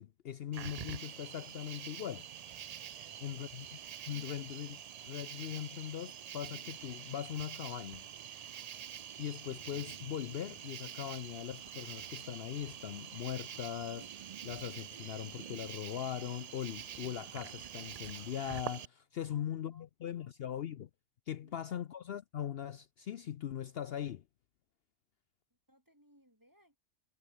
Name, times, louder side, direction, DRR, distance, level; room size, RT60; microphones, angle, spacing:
voice 1, 0.0-2.3 3.2-3.7 4.1-4.8 5.0-8.0 9.2-20.9 21.3-24.2, left 10 dB, 60° left, 0.8 m, -40 dB
Cricket, 0.5-18.9, right 9 dB, 65° right, 0.3 m, -46 dB
voice 2, 2.8-3.6 19.2-19.4 19.7-19.8 20.2-20.3 21.4-21.8 25.7-26.8, equal, 15° right, 4.7 m, -66 dB
omnidirectional pair, 1.3 m